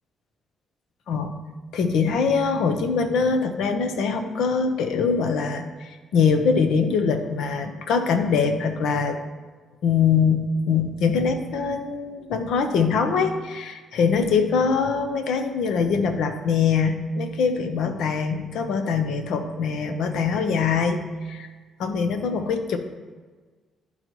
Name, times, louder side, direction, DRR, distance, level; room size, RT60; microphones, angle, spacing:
voice 1, 1.7-9.2 9.8-21.0 21.3-21.5 21.8-22.8, left 5 dB, 80° left, 7 dB, 0.7 m, -23 dB
11.5 x 4.0 x 3.0 m, 1.4 s
cardioid pair, 90°, 0 cm